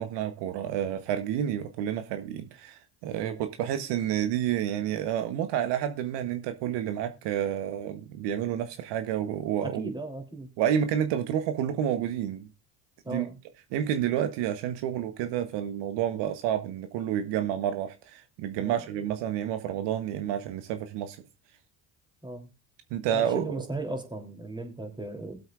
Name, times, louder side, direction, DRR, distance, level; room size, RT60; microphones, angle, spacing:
voice 1, 0.0-9.9 10.6-12.5 13.1-13.3 13.7-21.2 22.9-23.7, right 10 dB, 70° right, 1.0 m, -29 dB
voice 2, 9.6-10.5 13.0-13.4 18.6-18.8 22.2-22.5 23.1-25.4, right 2 dB, 10° right, 3.1 m, -37 dB
21.0 x 7.9 x 2.4 m
supercardioid pair, 75°, 44 cm